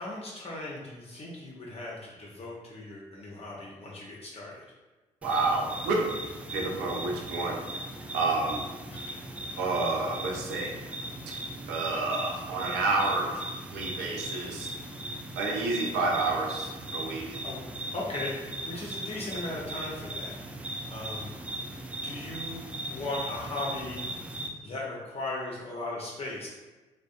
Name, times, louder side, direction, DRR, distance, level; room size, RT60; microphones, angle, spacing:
voice 1, 0.0-4.6 8.9-9.2 17.4-17.6 17.9-21.3 22.0-24.0 24.6-26.5, left 2 dB, 40° left, -4 dB, 0.6 m, -38 dB
sound 1, 5.2-24.5, right 1 dB, 10° right, 0.3 m, -38 dB
voice 2, 5.2-6.0 6.5-7.8 8.1-8.6 9.6-10.7 11.7-13.4 13.7-14.7 15.4-17.4, right 3 dB, 80° right, 0 dB, 0.5 m, -29 dB
2.5 x 2.1 x 2.4 m, 1.2 s
hypercardioid pair, 50°, 17 cm